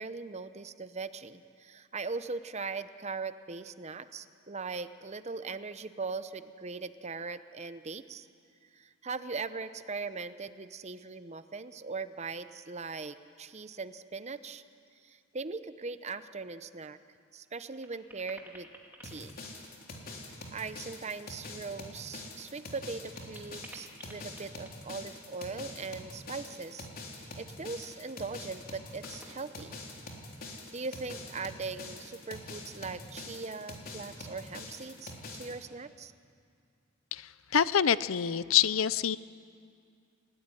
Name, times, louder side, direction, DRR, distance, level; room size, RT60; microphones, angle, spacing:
voice 1, 0.0-8.3 8.7-14.6 15.0-17.0 17.3-18.7 19.0-19.4 20.5-26.9 27.1-29.8 30.5-36.1, right 4 dB, 30° right, 12 dB, 0.8 m, -40 dB
sound 1, 14.3-14.5 14.9-15.2 15.5-15.6 16.9-17.0 17.4-20.4 22.0-25.5 27.4-28.0 28.3-28.7 29.0-30.1, right 1 dB, 10° right, 2.3 m, -54 dB
sound 2, 19.0-35.5, left 2 dB, 45° left, 3.6 m, -45 dB
voice 2, 37.1-39.2, left 8 dB, 70° left, 17 dB, 0.6 m, -26 dB
28.5 x 17.0 x 9.9 m, 2.3 s
head